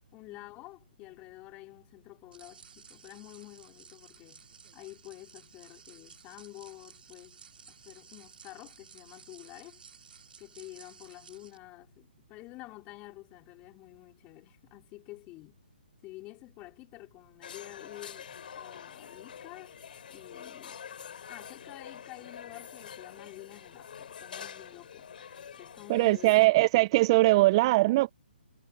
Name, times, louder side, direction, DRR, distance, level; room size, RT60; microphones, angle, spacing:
voice 1, 0.1-4.4 4.7-7.4 7.7-9.8 10.4-15.6 16.0-18.3 18.5-19.7 20.1-20.8 21.3-25.1 25.6-26.3, left 20 dB, 25° left, 3.3 m, -49 dB
sound 1, 2.3-11.6, right 6 dB, 65° right, 4.3 m, -55 dB
sound 2, 17.4-26.5, left 8 dB, 60° left, 3.3 m, -46 dB
voice 2, 25.9-28.1, right 20 dB, 30° right, 0.3 m, -21 dB
hypercardioid pair, 140°, 6 cm